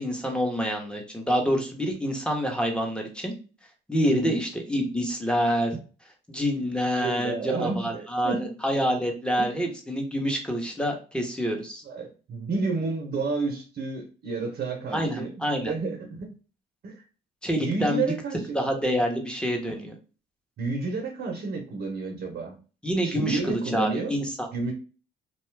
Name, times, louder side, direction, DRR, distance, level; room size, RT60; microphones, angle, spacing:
voice 1, 0.0-3.3 3.9-5.8 6.3-11.8 14.9-15.7 17.4-18.1 18.5-19.9 22.8-24.5, equal, 5° left, 2 dB, 0.8 m, -27 dB
voice 2, 4.1-4.4 6.9-8.5 9.4-9.6 11.8-16.3 16.8-17.0 17.6-18.6 20.6-22.6 23.0-24.1 24.5-24.7, right 4 dB, 60° right, 1 dB, 0.7 m, -30 dB
2.6 x 2.2 x 3.2 m, 0.36 s
cardioid pair, 90°, 20 cm